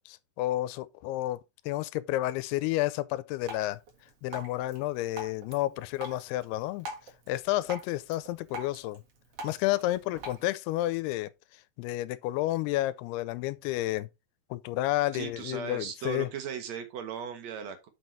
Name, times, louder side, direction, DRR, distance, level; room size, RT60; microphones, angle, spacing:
voice 1, 0.0-3.8 4.2-6.9 7.3-9.0 9.4-11.3 11.8-14.1 14.5-16.3, left 16 dB, 90° left, 2.6 m, -31 dB
Drip, 3.4-10.4, right 1 dB, 50° right, 2.1 m, -45 dB
voice 2, 15.1-17.9, right 7 dB, 80° right, 1.5 m, -37 dB
6.3 x 5.4 x 4.3 m
omnidirectional pair, 4.5 m